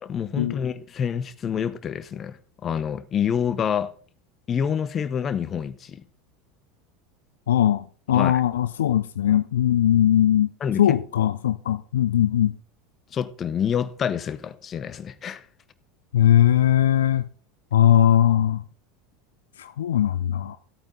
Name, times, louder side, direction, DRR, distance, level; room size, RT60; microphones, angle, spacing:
voice 1, 0.0-3.9 4.5-6.0 8.1-8.4 10.6-10.8 13.1-15.4, left 8 dB, 35° left, 0.9 m, -27 dB
voice 2, 7.5-10.5 10.8-12.6 16.1-17.3 17.7-18.6 19.6-20.6, left 11 dB, 70° left, 0.5 m, -20 dB
14.0 x 8.8 x 3.9 m
figure-of-eight pair, 80°, 0 cm